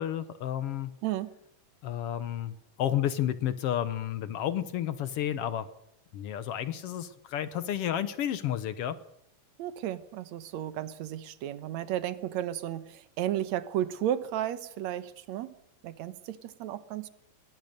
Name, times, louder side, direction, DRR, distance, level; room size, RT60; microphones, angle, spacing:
voice 1, 0.0-0.9 1.8-5.7 6.1-9.0, left 11 dB, 75° left, 13 dB, 1.3 m, -31 dB
voice 2, 1.0-1.3 9.6-15.5 15.8-17.1, right 11 dB, 65° right, 13 dB, 2.1 m, -33 dB
21.0 x 18.5 x 6.7 m, 0.73 s
omnidirectional pair, 3.9 m